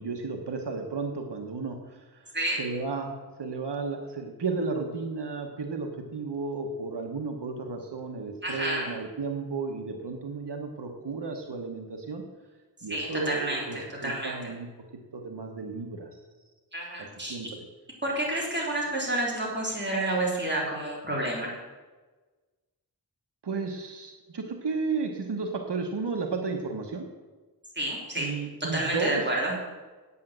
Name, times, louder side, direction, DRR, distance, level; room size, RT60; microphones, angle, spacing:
voice 1, 0.0-2.3 2.6-3.1 3.4-12.2 12.8-14.7 15.1-16.1 17.0-17.6 23.4-27.1 28.2-29.3, right 4 dB, 90° right, 3 dB, 1.2 m, -33 dB
voice 2, 8.4-8.9 12.9-14.4 16.7-17.4 18.0-21.5 27.8-28.3 28.7-29.5, right 1 dB, 25° right, -4 dB, 3.9 m, -29 dB
8.7 x 8.4 x 7.9 m, 1.3 s
wide cardioid pair, 80°, 40 cm